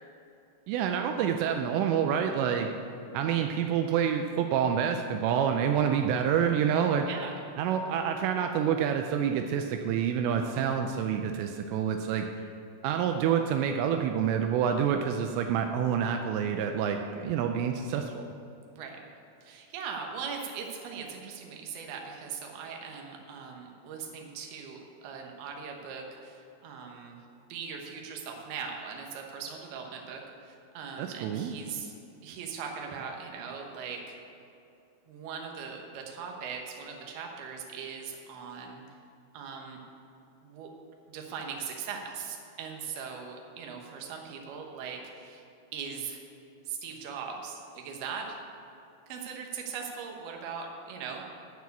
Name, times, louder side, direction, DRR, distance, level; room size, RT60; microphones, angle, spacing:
voice 1, 0.7-2.7 3.1-7.1 7.6-12.3 12.8-18.3 31.0-31.6, right 8 dB, 85° right, 5 dB, 2.8 m, -27 dB
voice 2, 19.4-27.2 27.5-31.9 32.2-34.2 35.1-38.8 39.3-39.8 40.4-40.7 41.1-45.5 45.7-46.2 46.7-48.4 49.1-51.3, right 6 dB, 70° right, 1 dB, 2.9 m, -40 dB
13.5 x 4.7 x 8.2 m, 2.6 s
omnidirectional pair, 5.1 m